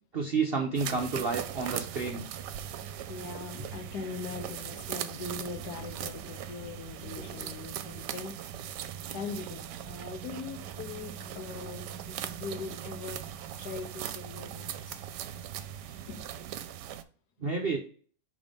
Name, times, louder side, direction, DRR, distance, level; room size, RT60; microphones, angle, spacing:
voice 1, 0.1-2.3 17.4-17.8, right 4 dB, 55° right, 2 dB, 0.6 m, -30 dB
sound 1, 0.8-17.0, right 10 dB, 75° right, 1.1 m, -40 dB
voice 2, 3.1-13.3 13.6-15.0 16.1-16.5, left 4 dB, 70° left, 7 dB, 1.4 m, -41 dB
5.3 x 3.6 x 5.2 m, 0.43 s
omnidirectional pair, 1.9 m